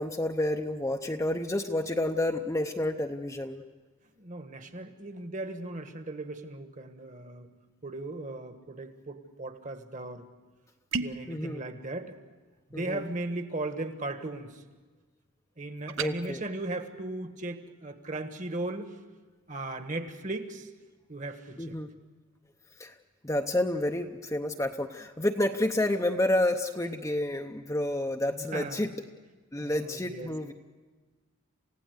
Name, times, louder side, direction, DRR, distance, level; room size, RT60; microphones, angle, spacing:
voice 1, 0.0-3.6 11.3-11.6 12.7-13.0 16.0-16.4 21.6-21.9 22.8-22.9 23.2-28.9 29.5-30.5, left 1 dB, 15° left, 3 dB, 0.7 m, -29 dB
voice 2, 4.2-7.5 7.8-10.3 11.0-12.2 12.7-14.6 15.6-19.0 19.5-20.7 21.1-21.8 28.3-28.9 29.6-30.3, right 2 dB, 35° right, 8 dB, 1.4 m, -37 dB
sound 1, 10.9-11.3 15.9-16.1, right 5 dB, 65° right, 0.8 m, -32 dB
28.0 x 16.5 x 8.0 m, 1.3 s
head